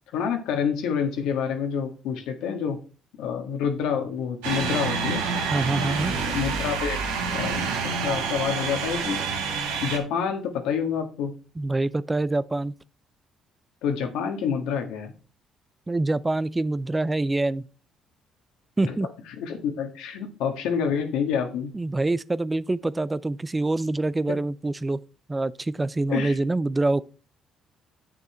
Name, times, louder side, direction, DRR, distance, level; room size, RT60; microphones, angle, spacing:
voice 1, 0.1-2.8 3.2-5.2 6.3-7.0 7.3-9.2 9.8-11.3 13.8-15.1 18.8-19.0 19.3-21.7 24.3-24.4 26.1-26.3, left 7 dB, 75° left, 1.7 m, -28 dB
sound 1, 4.4-10.0, right 5 dB, 90° right, 1.6 m, -28 dB
voice 2, 5.5-6.1 11.6-12.7 15.9-17.7 18.8-19.1 21.7-25.0 25.3-27.0, right 2 dB, 20° right, 0.4 m, -25 dB
8.3 x 6.6 x 4.4 m
hypercardioid pair, 60°, 0 cm